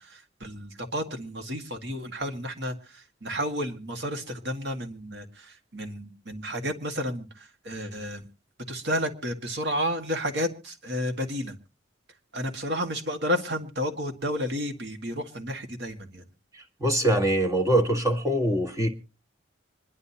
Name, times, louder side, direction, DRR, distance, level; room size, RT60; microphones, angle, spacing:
voice 1, 0.0-8.2 8.7-11.5 12.3-16.2, equal, 65° right, 5 dB, 1.9 m, -31 dB
voice 2, 16.8-18.9, right 1 dB, 20° right, 5 dB, 1.5 m, -23 dB
26.0 x 11.5 x 2.9 m, 0.31 s
head